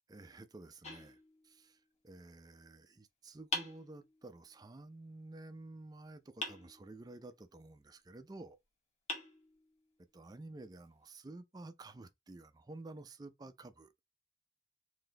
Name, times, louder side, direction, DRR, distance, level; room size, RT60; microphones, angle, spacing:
voice 1, 0.1-1.2 1.4-1.8 2.0-8.6 10.1-13.9, right 2 dB, 20° right, 0.4 m, -51 dB
sound 1, 0.8-1.9 3.5-4.5 6.4-7.3 8.5-8.6 9.1-10.1, left 2 dB, 35° left, 0.9 m, -44 dB
3.9 x 2.6 x 3.2 m
head